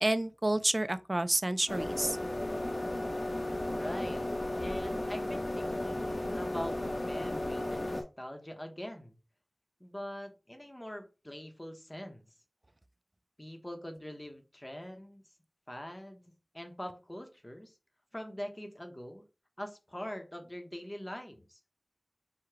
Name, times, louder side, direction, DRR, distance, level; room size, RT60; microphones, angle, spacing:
voice 1, 0.0-2.2, right 1 dB, 35° right, 0.4 m, -29 dB
sound 1, 1.7-8.0, left 1 dB, 75° left, 1.2 m, -34 dB
voice 2, 3.7-4.2 4.6-9.1 9.8-12.2 13.4-15.2 15.7-17.8 18.1-19.2 19.6-21.6, equal, 20° left, 0.9 m, -43 dB
4.8 x 2.3 x 4.6 m
wide cardioid pair, 60°, 0 cm